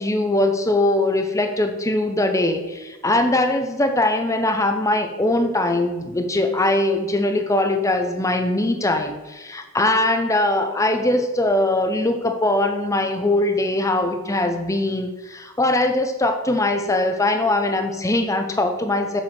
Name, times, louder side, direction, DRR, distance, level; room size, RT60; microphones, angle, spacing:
voice 1, 0.0-19.2, left 2 dB, 15° left, 6 dB, 0.7 m, -21 dB
7.5 x 7.0 x 4.3 m, 1.1 s
head